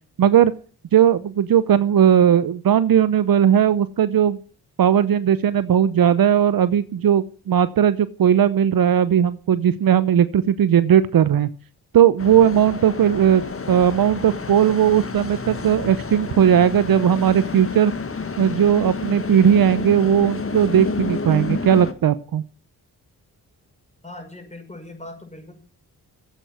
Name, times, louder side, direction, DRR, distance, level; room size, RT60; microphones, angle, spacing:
voice 1, 0.2-0.5 0.9-4.4 4.8-11.5 11.9-13.4 13.7-17.9 18.4-22.4, right 9 dB, 60° right, 15 dB, 0.8 m, -17 dB
sound 1, 12.2-21.9, left 4 dB, 35° left, 1.6 m, -30 dB
voice 2, 24.0-25.5, left 2 dB, 15° left, 3 dB, 5.9 m, -39 dB
10.5 x 8.3 x 9.3 m, 0.41 s
cardioid pair, 60°, 39 cm